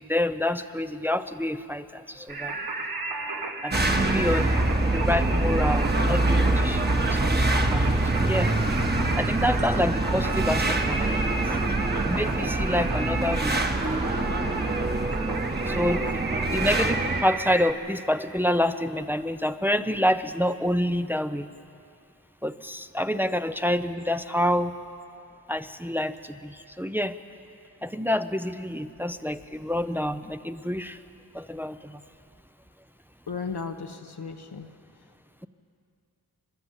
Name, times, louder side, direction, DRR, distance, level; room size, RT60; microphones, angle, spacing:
voice 1, 0.1-2.6 3.6-4.5 4.9-8.5 8.9-11.3 12.1-13.6 15.6-16.2 16.5-21.5 22.4-24.8 25.5-27.2 27.8-31.0 31.3-32.0, left 1 dB, 5° right, 10 dB, 0.6 m, -28 dB
Singing, 2.3-17.7, right 3 dB, 65° right, 1.4 m, -33 dB
sound 1, 3.7-17.2, right 2 dB, 25° right, 1.4 m, -25 dB
voice 2, 3.8-4.3 33.3-34.7, left 5 dB, 85° left, 5 dB, 1.3 m, -35 dB
28.5 x 12.5 x 8.2 m, 2.5 s
wide cardioid pair, 90°, 38 cm